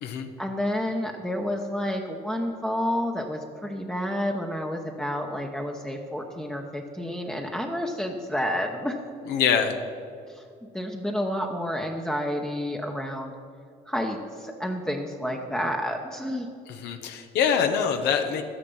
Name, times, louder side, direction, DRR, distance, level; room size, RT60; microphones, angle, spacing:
voice 1, 0.4-9.0 10.3-10.4 10.7-13.3 13.9-16.5, equal, 5° left, 1 dB, 0.9 m, -30 dB
voice 2, 9.3-9.8 16.7-18.4, left 7 dB, 80° left, 5 dB, 1.0 m, -24 dB
12.0 x 10.0 x 5.5 m, 2.4 s
cardioid pair, 110°, 17 cm